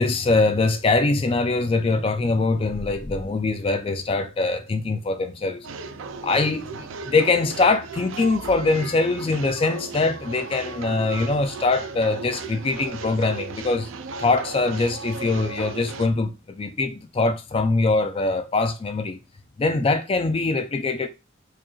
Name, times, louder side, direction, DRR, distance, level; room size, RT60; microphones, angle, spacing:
voice 1, 0.0-5.7 6.2-13.9 14.2-19.2 19.6-21.1, left 3 dB, 30° left, 0.3 m, -23 dB
sound 1, 3.6-4.2 6.1-7.2 8.2-9.4 10.8-11.5 12.4-13.3, left 1 dB, 55° left, 1.9 m, -43 dB
sound 2, 5.6-16.1, right 4 dB, 80° right, 0.4 m, -36 dB
4.7 x 3.0 x 2.3 m
head